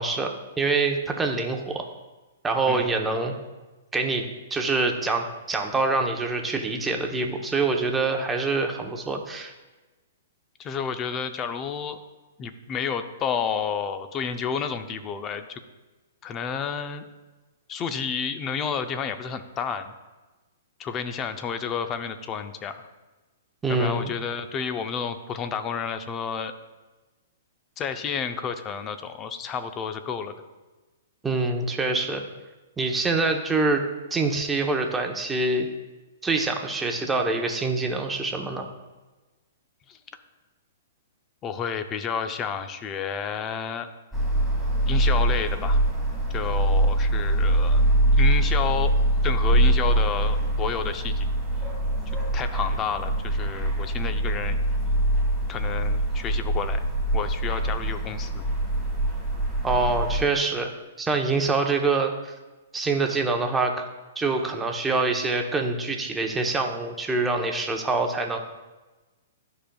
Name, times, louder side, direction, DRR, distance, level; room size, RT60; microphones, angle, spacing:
voice 1, 0.0-1.8 2.4-3.3 3.9-9.5 23.6-24.1 31.2-32.2 32.8-33.8 34.1-35.7 36.2-38.7 59.6-60.7 61.0-62.3 62.7-63.9 64.2-68.4, right 3 dB, 10° right, 3 dB, 0.9 m, -25 dB
voice 2, 10.6-12.0 12.4-15.6 16.2-17.0 17.7-19.9 20.8-22.8 23.7-26.5 27.8-30.3 39.9-40.0 41.4-43.9 44.9-45.8 46.3-47.8 48.1-48.9 49.2-51.3 52.3-54.6 55.5-56.9 57.1-58.4, left 6 dB, 25° left, 9 dB, 0.6 m, -30 dB
sound 1, 44.1-60.2, right 1 dB, 5° left, 2.0 m, -23 dB
12.5 x 5.2 x 2.3 m, 1.2 s
hypercardioid pair, 130°, 0 cm